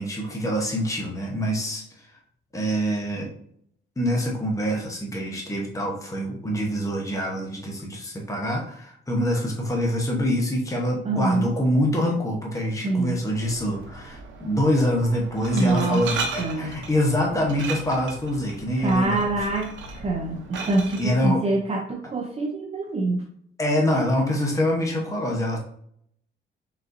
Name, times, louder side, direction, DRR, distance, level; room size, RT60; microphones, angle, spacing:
voice 1, 0.0-1.8 2.5-3.3 4.0-19.2 21.0-21.4 23.6-25.6, equal, 15° left, -1 dB, 1.1 m, -25 dB
voice 2, 11.0-11.5 12.8-13.2 15.5-16.0 16.4-16.8 18.8-23.2, right 2 dB, 30° right, 1 dB, 0.6 m, -25 dB
Glass, 13.3-21.1, right 4 dB, 70° right, 0.9 m, -36 dB
4.0 x 3.9 x 2.7 m, 0.65 s
cardioid pair, 90°, 20 cm